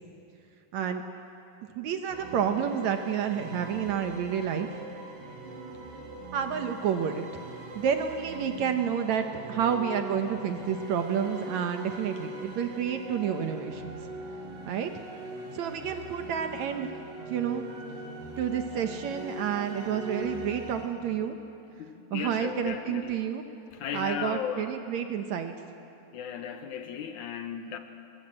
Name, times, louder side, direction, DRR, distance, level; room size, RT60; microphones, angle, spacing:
voice 1, 0.7-1.0 1.8-4.7 6.3-7.4 7.8-14.1 14.7-14.9 15.5-16.9 17.3-17.6 18.4-21.4 22.1-23.4 23.9-25.5, right 8 dB, 70° right, 6 dB, 2.0 m, -30 dB
sound 1, 2.1-20.9, right 1 dB, 85° right, 3.8 m, -41 dB
voice 2, 21.8-23.3 23.7-24.7 26.1-27.8, left 8 dB, 70° left, 7 dB, 2.3 m, -36 dB
22.5 x 21.0 x 7.6 m, 2.7 s
omnidirectional pair, 3.9 m